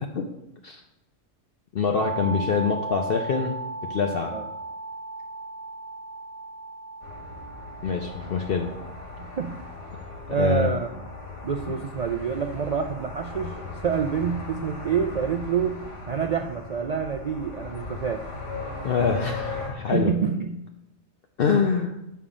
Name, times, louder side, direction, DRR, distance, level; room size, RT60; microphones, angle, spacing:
voice 1, 1.7-3.6 3.9-4.3 7.8-8.7 10.4-10.7 18.8-20.1 21.4-22.0, left 5 dB, 60° left, 3 dB, 0.8 m, -25 dB
sound 1, 2.0-11.8, right 3 dB, 40° right, 0.7 m, -38 dB
sound 2, 7.0-19.7, left 3 dB, 90° left, 2.3 m, -38 dB
voice 2, 9.2-9.6 10.3-10.9 11.4-13.6 13.8-15.8 16.1-18.3 19.9-20.6, right 7 dB, 70° right, 5 dB, 0.3 m, -27 dB
7.2 x 5.6 x 4.9 m, 0.88 s
omnidirectional pair, 1.2 m